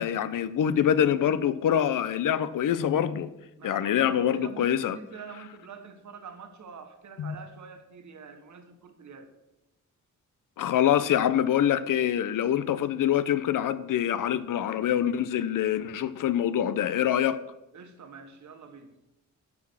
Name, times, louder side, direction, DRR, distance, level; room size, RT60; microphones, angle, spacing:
voice 1, 0.0-3.3 3.6-5.0 7.2-7.3 10.6-17.4, left 10 dB, 80° left, 0.7 m, -25 dB
voice 2, 3.6-9.3 17.7-18.9, right 5 dB, 65° right, 1.5 m, -46 dB
12.0 x 6.1 x 6.3 m
wide cardioid pair, 150°, 32 cm